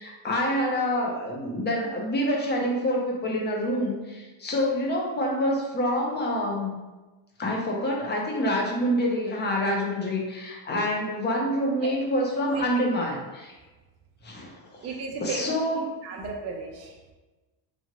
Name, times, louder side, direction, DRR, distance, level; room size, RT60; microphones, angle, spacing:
voice 1, 0.0-6.7 7.4-13.5 14.2-14.9 15.2-15.8, equal, 20° left, -1 dB, 0.7 m, -27 dB
voice 2, 12.5-12.9 14.8-15.4 16.0-17.1, right 4 dB, 30° right, 0 dB, 0.5 m, -35 dB
3.5 x 3.0 x 2.9 m, 1.2 s
cardioid pair, 135°, 49 cm